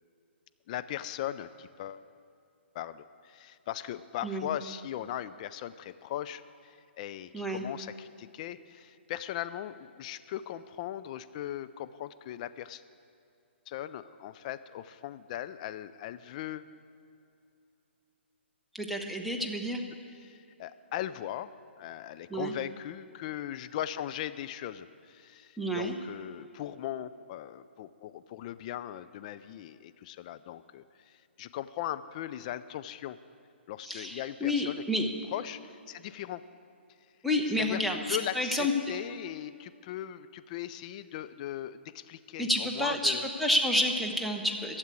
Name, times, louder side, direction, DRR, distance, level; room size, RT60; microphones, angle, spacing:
voice 1, 0.7-2.0 2.7-12.8 13.7-16.7 20.2-21.5 21.8-33.2 33.7-36.4 37.6-43.2, left 12 dB, 40° left, 13 dB, 0.4 m, -39 dB
voice 2, 18.7-19.8 22.3-22.5 25.6-25.9 33.8-35.1 37.2-38.7 42.4-44.8, left 1 dB, ahead, 1 dB, 0.9 m, -29 dB
13.0 x 7.3 x 8.3 m, 2.6 s
hypercardioid pair, 135°, 6 cm